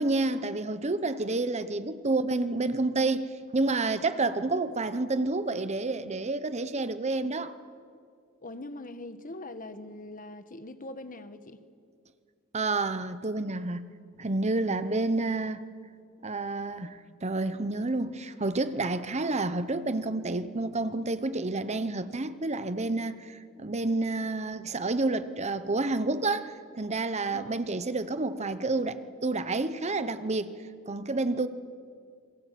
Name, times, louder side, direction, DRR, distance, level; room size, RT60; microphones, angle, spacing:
voice 1, 0.0-7.5 12.5-13.9 14.2-15.6 16.2-30.5 30.9-31.5, right 2 dB, 35° right, 1.0 m, -29 dB
voice 2, 8.4-11.6 27.3-27.6, left 2 dB, 40° left, 1.4 m, -42 dB
28.5 x 22.5 x 8.5 m
head